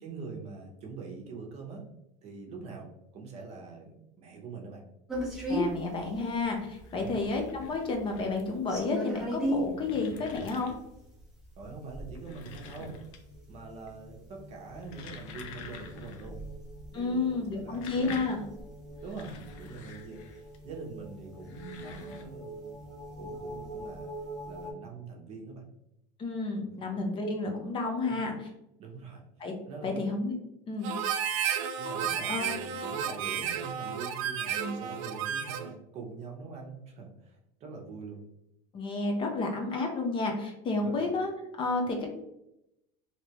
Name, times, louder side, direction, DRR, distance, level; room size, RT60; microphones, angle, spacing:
voice 1, 0.0-1.9 2.2-4.8 6.9-7.2 11.6-13.0 13.5-16.4 16.9-18.2 19.0-24.1 24.5-25.6 26.6-26.8 28.0-28.2 28.8-29.2 29.7-30.0 31.8-38.2 40.8-41.1, right 4 dB, 40° right, 0 dB, 0.8 m, -44 dB
sound 1, 5.1-24.7, equal, ahead, 0.7 m, -39 dB
voice 2, 5.5-10.7 16.9-18.5 26.2-28.5 29.4-29.5 29.8-30.3 30.7-30.9 32.3-32.5 34.6-34.8 38.7-41.3 41.6-42.1, left 3 dB, 30° left, 2 dB, 0.6 m, -31 dB
sound 2, 6.7-8.6 9.3-11.0 12.0-13.5 13.7-14.2 14.6-16.3 16.6-16.7 17.5-20.6 21.3-22.2, left 5 dB, 80° left, 0.5 m, -47 dB
Harmonica, 30.8-35.7, right 8 dB, 80° right, 0.4 m, -32 dB
3.2 x 2.9 x 2.9 m, 0.84 s
supercardioid pair, 140°, 16 cm